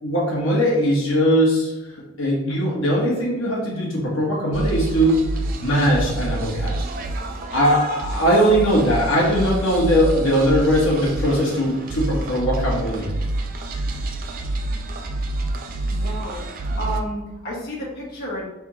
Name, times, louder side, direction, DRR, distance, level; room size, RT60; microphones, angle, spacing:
voice 1, 0.0-1.7 2.2-5.3 5.6-6.8 7.5-13.1 13.7-13.9, equal, 70° left, -4 dB, 1.2 m, -20 dB
sound 1, 4.5-17.0, right 2 dB, 40° right, 0.4 m, -28 dB
voice 2, 15.9-16.4 16.8-18.4, right 1 dB, 50° left, -5 dB, 1.2 m, -31 dB
3.4 x 2.9 x 4.7 m, 1.0 s
head